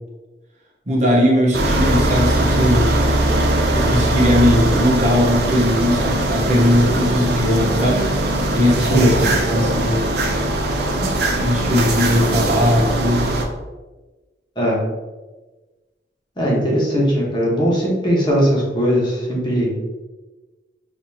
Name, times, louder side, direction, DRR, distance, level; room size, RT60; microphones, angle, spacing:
voice 1, 0.9-2.9 3.7-8.1 8.5-9.2 9.4-10.0 11.0-13.4, left 1 dB, 40° right, -3 dB, 1.0 m, -18 dB
sound 1, 1.5-13.5, right 1 dB, 65° right, 0.6 m, -20 dB
voice 2, 16.4-19.7, equal, 25° left, -4 dB, 1.2 m, -18 dB
6.6 x 2.8 x 2.8 m, 1.2 s
head